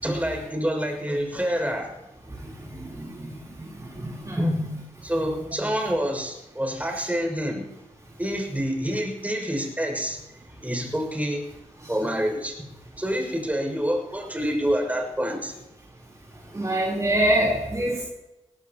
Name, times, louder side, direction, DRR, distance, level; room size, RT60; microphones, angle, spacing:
voice 1, 0.0-1.9 4.4-4.6 5.0-7.6 8.2-10.2 10.6-11.5 11.9-12.7 13.0-15.5, equal, 10° right, 1 dB, 6.6 m, -27 dB
voice 2, 2.8-3.3 3.8-4.8 16.5-18.0, right 1 dB, 25° right, -4 dB, 4.2 m, -25 dB
22.0 x 18.0 x 3.1 m, 0.99 s
cardioid pair, 60°, 13 cm